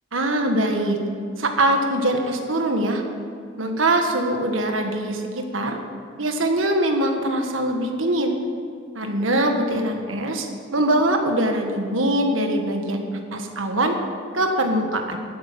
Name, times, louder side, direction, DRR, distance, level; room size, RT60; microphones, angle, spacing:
voice 1, 0.1-1.0 1.4-3.0 3.6-5.8 6.2-8.4 8.9-14.0 14.3-15.2, right 1 dB, 85° right, 4 dB, 1.6 m, -22 dB
12.0 x 8.8 x 7.5 m, 2.3 s
head